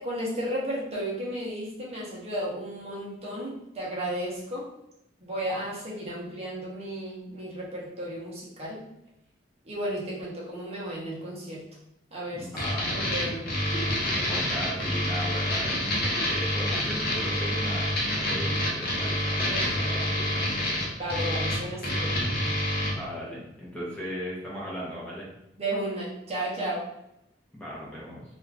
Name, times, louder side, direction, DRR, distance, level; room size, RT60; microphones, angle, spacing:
voice 1, 0.0-4.7 5.2-8.8 9.6-11.6 12.1-12.5 12.9-14.0 19.5-19.9 21.0-22.2 25.6-26.9, right 1 dB, 35° right, -5 dB, 0.7 m, -34 dB
voice 2, 12.3-12.9 14.0-20.6 22.8-25.3 27.5-28.2, equal, 5° left, -7 dB, 0.8 m, -37 dB
sound 1, 12.6-22.9, left 1 dB, 55° left, 0.8 m, -27 dB
2.5 x 2.4 x 3.3 m, 0.83 s
head